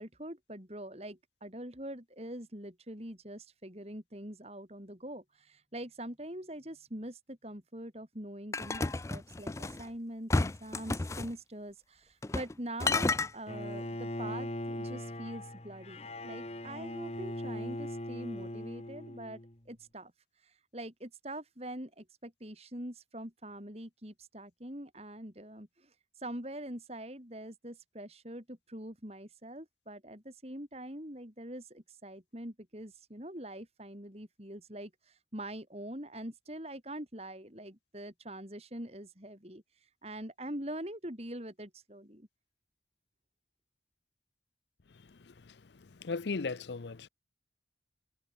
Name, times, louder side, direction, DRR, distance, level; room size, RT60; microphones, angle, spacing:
voice 1, 0.0-20.1 20.4-42.3, right 1 dB, 35° right, 5.2 m, -44 dB
sound 1, 8.5-9.8 10.3-11.3 12.2-12.5 12.8-13.3, left 3 dB, 15° left, 0.4 m, -31 dB
Bowed string instrument, 13.5-19.6, left 1 dB, 35° left, 2.4 m, -40 dB
voice 2, 46.0-47.1, left 4 dB, 75° left, 0.6 m, -35 dB
head